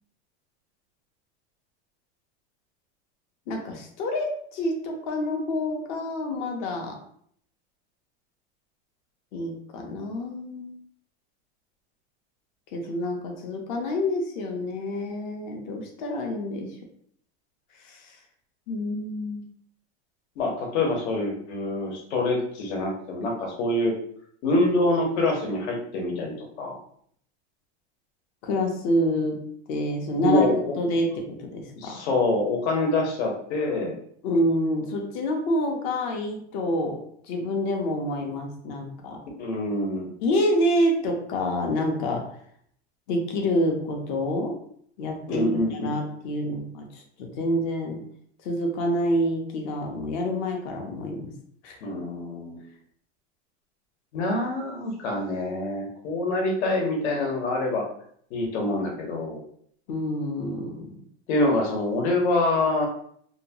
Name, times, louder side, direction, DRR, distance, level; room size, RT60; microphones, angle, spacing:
voice 1, 3.5-7.0 9.3-10.8 12.7-16.8 17.8-18.2 18.7-19.5 28.4-29.4 29.7-30.5 30.8-32.0 34.2-37.0 37.2-39.2 40.2-42.2 43.1-44.5 45.0-48.0 48.4-51.3 51.6-51.8 59.9-60.9, left 1 dB, 45° left, 2 dB, 0.6 m, -27 dB
voice 2, 20.4-23.9 24.4-26.8 30.1-30.8 31.8-34.0 39.4-40.1 45.3-46.0 51.8-52.6 54.1-57.9 58.3-59.4 61.3-62.9, left 2 dB, 80° left, 1 dB, 0.9 m, -25 dB
2.8 x 2.2 x 2.7 m, 0.64 s
supercardioid pair, 175°, 33 cm